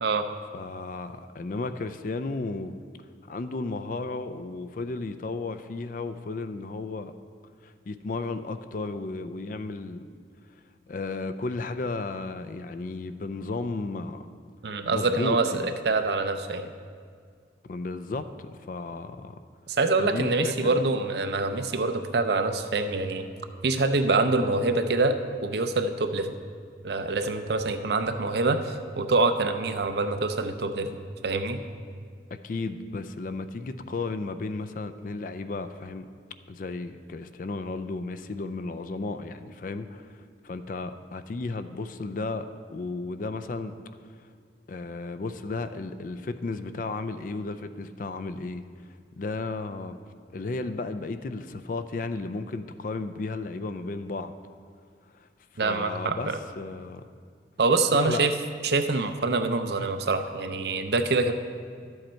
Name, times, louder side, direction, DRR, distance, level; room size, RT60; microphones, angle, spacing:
voice 1, 0.5-2.7 3.3-7.1 7.6-10.1 10.9-14.3 14.7-15.8 17.6-19.4 20.0-20.8 32.3-36.1 36.5-43.7 44.7-48.6 49.2-50.0 50.3-54.3 55.1-55.3 55.6-57.0 57.9-58.3, left 3 dB, 45° left, 10 dB, 0.4 m, -34 dB
voice 2, 14.6-16.7 19.7-23.3 23.6-25.2 25.4-26.3 26.8-31.6 55.6-56.4 57.6-58.3 58.6-61.3, right 3 dB, 60° right, 8 dB, 0.6 m, -25 dB
11.5 x 7.8 x 4.4 m, 2.1 s
head